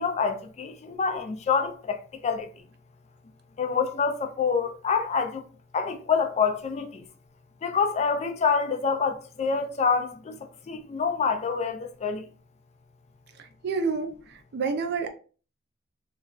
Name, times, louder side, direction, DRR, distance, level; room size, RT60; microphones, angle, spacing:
voice 1, 0.0-2.5 3.6-5.4 5.7-7.1 7.6-12.2, left 5 dB, 35° left, 0.3 m, -27 dB
voice 2, 13.4-15.1, right 4 dB, 55° right, 0.4 m, -29 dB
3.0 x 2.3 x 2.4 m
head